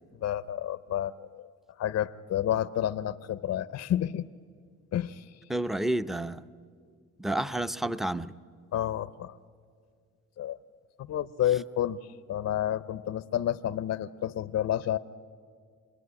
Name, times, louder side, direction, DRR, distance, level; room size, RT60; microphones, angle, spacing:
voice 1, 0.2-1.5 1.8-4.3 4.9-5.4 8.7-9.4 10.4-10.6 11.1-12.0 12.3-15.0, left 11 dB, 60° left, 0.7 m, -30 dB
voice 2, 5.5-6.4 7.2-8.3, right 1 dB, ahead, 0.6 m, -30 dB
26.5 x 20.0 x 9.8 m
cardioid pair, 90°, 30 cm